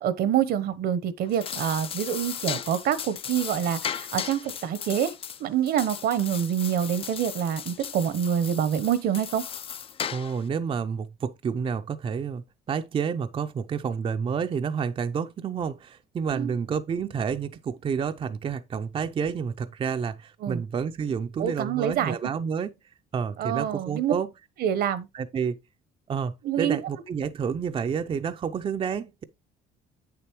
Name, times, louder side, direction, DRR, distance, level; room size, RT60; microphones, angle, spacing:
voice 1, 0.0-5.1 5.4-9.4 16.3-16.5 20.4-20.6 21.4-22.1 23.4-24.1 24.6-25.1 26.4-26.8, right 9 dB, 65° right, 0.9 m, -26 dB
sound 1, 1.2-10.5, left 8 dB, 35° left, 0.4 m, -36 dB
voice 2, 10.1-22.7 23.1-24.3 25.1-25.6 26.1-29.2, right 6 dB, 35° right, 0.5 m, -29 dB
8.2 x 6.8 x 3.0 m
cardioid pair, 110°, 17 cm